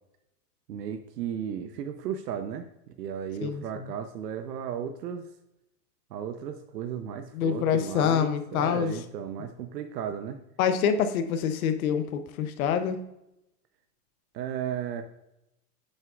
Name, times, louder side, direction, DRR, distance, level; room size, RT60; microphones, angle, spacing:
voice 1, 0.7-5.3 6.1-10.4 14.3-15.0, right 8 dB, 80° right, 7 dB, 0.8 m, -35 dB
voice 2, 3.4-3.9 7.3-9.0 10.6-13.0, left 8 dB, 60° left, 8 dB, 0.8 m, -26 dB
11.0 x 6.5 x 2.4 m, 0.86 s
supercardioid pair, 170°, 48 cm